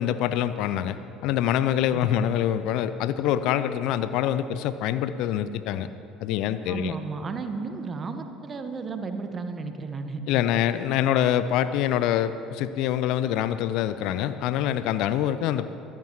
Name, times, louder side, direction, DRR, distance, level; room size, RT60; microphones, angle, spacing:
voice 1, 0.0-5.9 6.2-7.0 10.3-15.7, left 11 dB, 55° left, 13 dB, 0.5 m, -25 dB
voice 2, 1.9-2.3 6.7-10.2, right 4 dB, 35° right, 7 dB, 1.3 m, -33 dB
23.5 x 15.5 x 3.1 m, 2.8 s
figure-of-eight pair, 60°, 0 cm